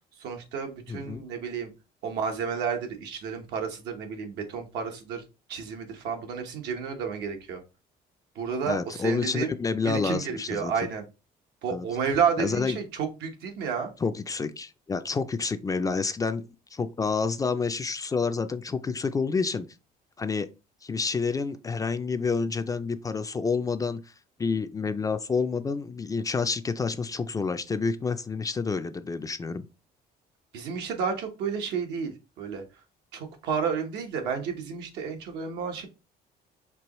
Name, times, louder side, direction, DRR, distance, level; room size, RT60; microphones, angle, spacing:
voice 1, 0.2-1.7 2.0-5.2 5.5-7.6 8.3-9.5 9.8-11.0 11.6-13.9 30.5-32.6 33.1-35.9, right 6 dB, 85° right, 1.1 m, -31 dB
voice 2, 0.9-1.3 8.7-10.7 11.7-11.9 12.4-12.8 14.0-19.7 20.2-20.5 20.8-24.1 24.4-29.6, left 4 dB, 20° left, 0.3 m, -29 dB
4.7 x 2.9 x 3.0 m
cardioid pair, 110°, 17 cm